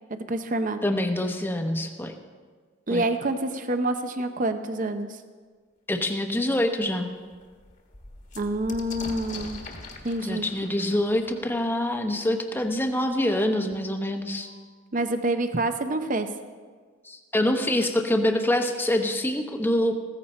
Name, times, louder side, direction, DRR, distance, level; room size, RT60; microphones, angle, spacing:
voice 1, 0.1-0.8 2.9-5.2 8.4-9.6 10.0-10.5 14.9-16.3, right 2 dB, 40° right, 8 dB, 0.7 m, -27 dB
voice 2, 0.8-2.1 2.9-3.0 5.9-7.1 10.2-14.5 17.0-20.0, left 1 dB, 10° left, 4 dB, 0.9 m, -25 dB
sound 1, 6.3-6.4 6.8-6.9 7.2-12.7 13.7-13.8 14.1-14.7, left 3 dB, 40° left, 1.5 m, -43 dB
15.5 x 14.5 x 4.3 m, 1.5 s
head